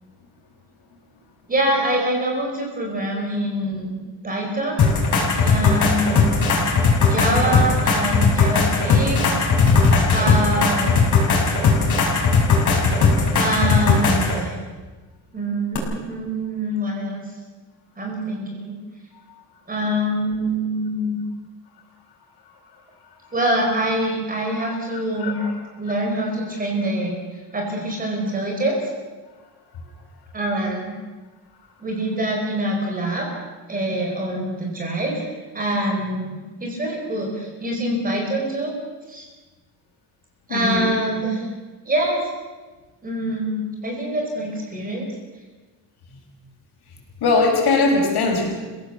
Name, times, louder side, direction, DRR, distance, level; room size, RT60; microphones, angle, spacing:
voice 1, 1.5-3.9 4.2-4.9 5.4-6.4 7.0-9.2 10.1-11.1 13.3-14.5 15.3-17.2 18.0-18.8 19.7-21.2 23.3-25.4 25.8-28.9 30.3-30.9 31.8-33.3 33.7-35.3 35.5-38.7 39.1-39.3 40.5-41.5 41.9-42.2 43.0-45.1, right 1 dB, 20° right, 0 dB, 4.8 m, -25 dB
sound 1, 4.8-14.4 15.7-15.8, left 4 dB, 45° left, 5.6 m, -18 dB
voice 2, 24.4-24.7 25.2-25.5 40.5-40.9 46.1-46.2 47.2-48.5, left 3 dB, 65° left, 0 dB, 6.2 m, -21 dB
29.5 x 17.0 x 6.9 m, 1.3 s
cardioid pair, 180°, 42 cm